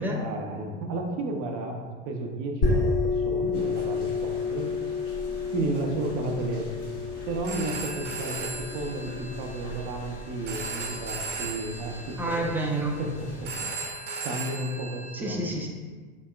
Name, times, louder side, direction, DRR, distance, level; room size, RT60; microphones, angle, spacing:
voice 1, 0.0-4.7 5.5-6.7 7.3-12.4 13.0-13.7 14.2-15.4, right 2 dB, 55° right, 2 dB, 0.7 m, -33 dB
sound 1, 2.6-12.0, left 4 dB, 60° left, 1.4 m, -31 dB
sound 2, 3.5-13.7, left 2 dB, 80° left, 1.1 m, -45 dB
Telephone, 7.3-15.1, right 4 dB, 85° right, 0.9 m, -37 dB
voice 2, 12.2-13.0 15.1-15.7, right 1 dB, 5° right, 0 dB, 0.4 m, -28 dB
3.4 x 3.0 x 2.2 m, 1.4 s
hypercardioid pair, 85°, 36 cm